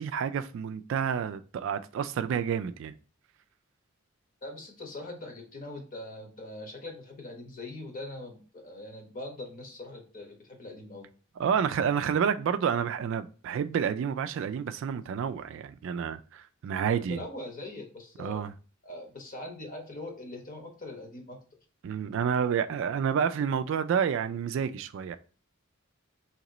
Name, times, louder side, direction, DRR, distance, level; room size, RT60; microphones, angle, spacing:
voice 1, 0.0-2.9 11.4-17.3 18.2-18.5 21.8-25.2, right 7 dB, 65° right, 0.3 m, -29 dB
voice 2, 4.4-11.1 16.9-18.4 18.8-21.4, left 2 dB, 40° left, 1.0 m, -42 dB
3.0 x 2.9 x 3.8 m
head